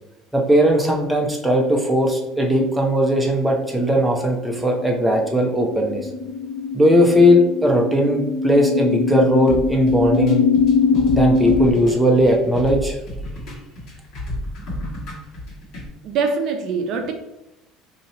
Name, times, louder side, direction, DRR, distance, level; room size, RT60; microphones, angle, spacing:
voice 1, 0.3-6.1 6.7-10.4 11.1-13.0, equal, 5° right, -1 dB, 0.6 m, -18 dB
sound 1, 3.2-11.7, left 4 dB, 40° left, 0.5 m, -22 dB
sound 2, 9.5-15.9, left 1 dB, 55° left, 1.4 m, -31 dB
voice 2, 16.0-17.1, right 4 dB, 55° right, 5 dB, 0.5 m, -23 dB
2.9 x 2.8 x 4.0 m, 0.89 s
cardioid pair, 130°, 0 cm